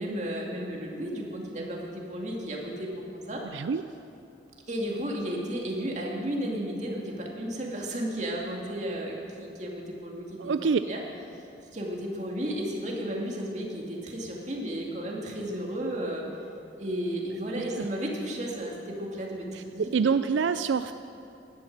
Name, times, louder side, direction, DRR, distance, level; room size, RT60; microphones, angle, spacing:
voice 1, 0.0-3.4 4.7-10.5 10.8-11.0 11.7-16.2 16.8-20.1, right 1 dB, 40° right, -1 dB, 2.4 m, -33 dB
voice 2, 3.5-3.8 10.4-10.8 17.5-17.9 19.5-20.9, right 5 dB, 85° right, 11 dB, 0.4 m, -26 dB
17.0 x 11.5 x 6.6 m, 2.6 s
head